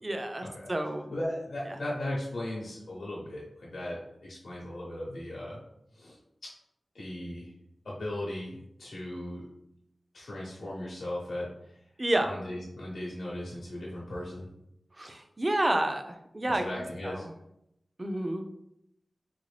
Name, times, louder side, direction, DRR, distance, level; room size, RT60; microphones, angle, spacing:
voice 1, 0.0-1.1 12.0-12.3 15.0-16.6 17.0-17.3 18.0-18.5, right 1 dB, 25° right, 6 dB, 0.4 m, -29 dB
voice 2, 1.1-5.6 5.9-6.5 6.9-7.5 7.8-9.5 10.1-11.8 12.2-14.5 15.0-15.2 16.5-17.2, left 1 dB, 80° left, -5 dB, 0.7 m, -37 dB
3.5 x 2.5 x 3.2 m, 0.79 s
wide cardioid pair, 100°, 0 cm